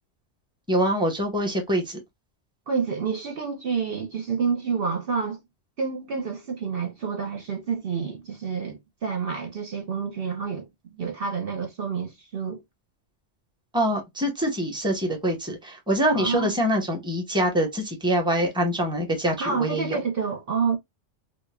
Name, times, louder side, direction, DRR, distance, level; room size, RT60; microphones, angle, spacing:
voice 1, 0.7-2.0 13.7-20.0, right 1 dB, 5° right, 1.0 m, -25 dB
voice 2, 2.7-5.4 5.8-12.6 16.1-16.5 19.4-20.8, right 5 dB, 55° right, 0.9 m, -28 dB
4.9 x 2.4 x 2.2 m
omnidirectional pair, 1.2 m